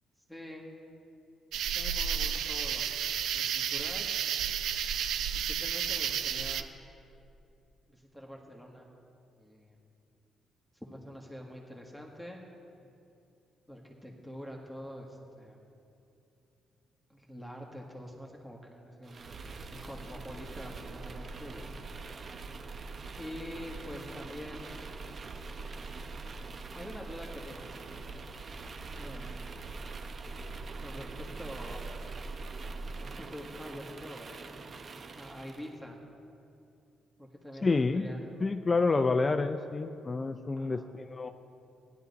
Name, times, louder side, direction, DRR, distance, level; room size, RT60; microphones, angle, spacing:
voice 1, 0.3-0.7 1.6-2.9 3.3-4.1 5.3-6.7 7.9-8.9 9.4-9.7 10.8-12.5 13.7-15.6 17.1-19.4 19.7-21.7 23.2-24.7 26.7-28.0 29.0-29.5 30.8-31.1 31.4-31.9 32.9-34.4 35.2-36.0 37.2-38.2 40.6-40.9, equal, ahead, -1 dB, 1.5 m, -45 dB
sound 1, 1.5-6.6, right 8 dB, 80° right, 0.5 m, -32 dB
sound 2, 19.0-35.7, right 3 dB, 45° right, 0.7 m, -43 dB
voice 2, 37.6-38.1 38.4-41.3, left 3 dB, 30° left, 8 dB, 0.4 m, -28 dB
15.5 x 11.0 x 4.1 m, 2.6 s
cardioid pair, 90°, 0 cm